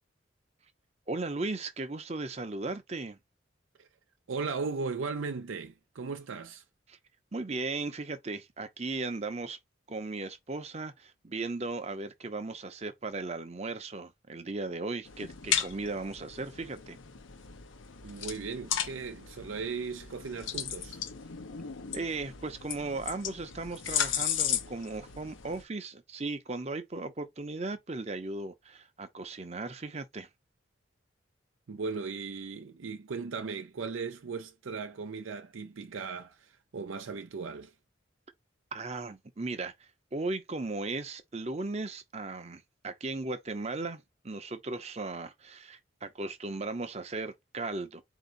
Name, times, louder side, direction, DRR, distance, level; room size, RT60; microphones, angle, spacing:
voice 1, 1.1-3.2 6.9-7.0 7.3-9.6 9.9-17.0 21.9-30.3 38.7-48.0, right 3 dB, 35° right, 0.6 m, -37 dB
voice 2, 4.3-6.6 18.0-21.0 31.7-37.7, right 4 dB, 90° right, 0.5 m, -37 dB
sound 1, 15.1-25.6, left 9 dB, 80° left, 0.7 m, -36 dB
4.3 x 2.7 x 3.8 m
head